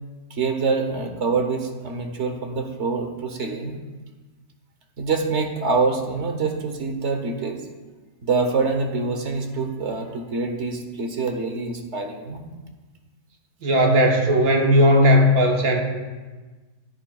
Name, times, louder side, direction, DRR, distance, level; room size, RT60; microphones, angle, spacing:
voice 1, 0.3-3.8 5.0-7.6 8.2-12.4, right 4 dB, 50° right, 4 dB, 1.3 m, -25 dB
voice 2, 13.6-15.9, equal, 70° right, 1 dB, 1.7 m, -17 dB
12.0 x 10.0 x 2.4 m, 1.3 s
omnidirectional pair, 1.6 m